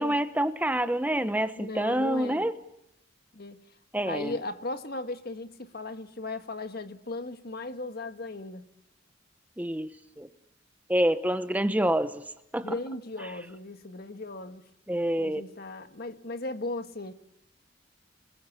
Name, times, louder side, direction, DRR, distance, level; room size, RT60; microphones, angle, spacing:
voice 1, 0.0-2.6 3.9-4.4 9.6-9.9 10.2-10.3 10.9-12.2 12.5-12.7 14.9-15.4, right 1 dB, 10° right, 1.0 m, -27 dB
voice 2, 1.6-2.4 3.3-3.6 4.0-8.7 12.6-14.7 15.2-17.1, left 2 dB, 50° left, 1.7 m, -37 dB
27.5 x 22.0 x 8.6 m
head